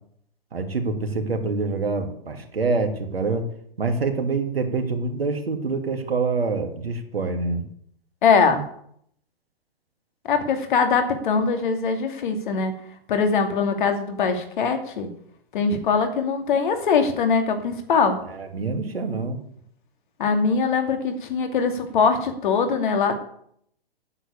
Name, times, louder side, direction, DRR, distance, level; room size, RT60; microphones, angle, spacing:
voice 1, 0.5-3.5 3.8-7.6 18.2-19.4, right 4 dB, 75° right, 5 dB, 2.6 m, -26 dB
voice 2, 8.2-8.6 10.2-12.7 13.1-15.1 15.5-18.2 20.2-23.2, left 5 dB, 55° left, 6 dB, 2.7 m, -22 dB
9.9 x 8.3 x 8.5 m, 0.68 s
figure-of-eight pair, 120°, 30 cm